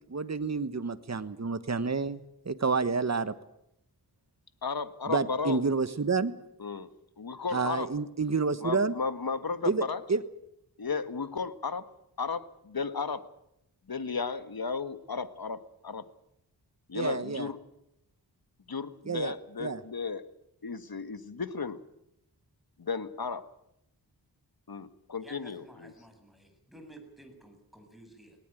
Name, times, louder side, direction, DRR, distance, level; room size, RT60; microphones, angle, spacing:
voice 1, 0.1-2.2 2.4-3.3 5.1-6.3 7.5-9.0 9.7-9.8 10.1-10.2 16.9-17.5 19.1-19.3 19.6-19.8, right 4 dB, 40° right, 13 dB, 1.3 m, -29 dB
voice 2, 4.6-5.6 6.6-6.9 7.2-7.9 8.6-10.0 10.8-11.9 12.2-13.2 13.9-16.0 16.9-17.6 18.7-20.2 20.6-21.8 22.8-23.5 24.7-25.9, left 5 dB, 60° left, 12 dB, 1.6 m, -34 dB
voice 3, 25.2-28.4, right 1 dB, ahead, 5 dB, 7.7 m, -53 dB
19.5 x 19.0 x 9.1 m, 0.81 s
cardioid pair, 50°, 42 cm